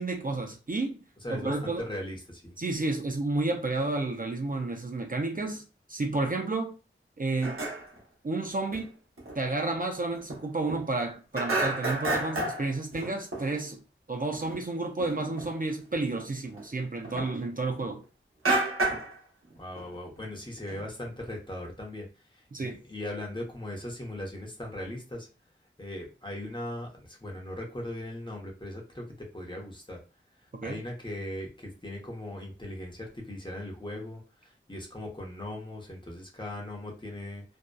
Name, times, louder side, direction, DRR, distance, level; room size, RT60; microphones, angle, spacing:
voice 1, 0.0-1.0 1.3-1.8 2.6-5.6 5.9-6.8 7.2-7.6 8.2-8.9 9.4-13.8 14.1-18.0 22.5-22.8 30.5-30.8, right 2 dB, 40° right, 0.4 m, -31 dB
voice 2, 1.2-2.5 19.6-25.3 25.8-30.0 30.6-37.4, left 1 dB, 20° left, 0.9 m, -39 dB
sound 1, 7.4-8.0 8.7-8.8 9.2-9.4 9.8-9.9 10.2-11.1 11.3-13.6 14.3-14.6 15.0-15.6 15.9-17.9 18.4-19.2 19.5-19.9 20.2-20.3 20.6-21.3, right 2 dB, 85° right, 0.8 m, -31 dB
2.5 x 2.2 x 2.2 m
wide cardioid pair, 40°, 21 cm